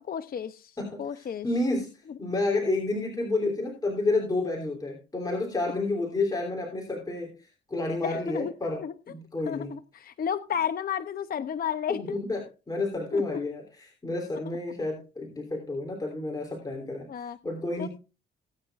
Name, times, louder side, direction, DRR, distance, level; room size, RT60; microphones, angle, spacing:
voice 1, 0.0-0.7 1.0-1.5 8.0-8.5 8.8-8.9 9.5-12.2 13.1-13.4 17.1-17.4 17.8-17.9, left 8 dB, 50° left, 11 dB, 0.7 m, -32 dB
voice 2, 0.8-9.7 11.9-17.9, left 2 dB, 20° left, 0 dB, 3.2 m, -30 dB
18.5 x 9.2 x 2.5 m, 0.31 s
cardioid pair, 90°, 20 cm